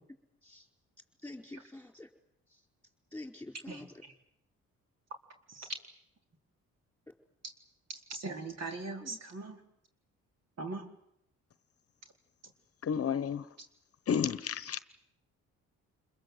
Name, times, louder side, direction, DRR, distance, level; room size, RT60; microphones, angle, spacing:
voice 1, 1.2-2.1 3.1-3.9 9.0-9.2, left 2 dB, 5° left, 4 dB, 4.6 m, -46 dB
voice 2, 8.1-9.6 10.6-10.9, right 3 dB, 55° right, 4 dB, 4.3 m, -40 dB
voice 3, 12.8-13.4 14.1-14.8, left 7 dB, 50° left, 14 dB, 1.0 m, -31 dB
28.5 x 21.5 x 8.0 m, 0.73 s
cardioid pair, 90°, 30 cm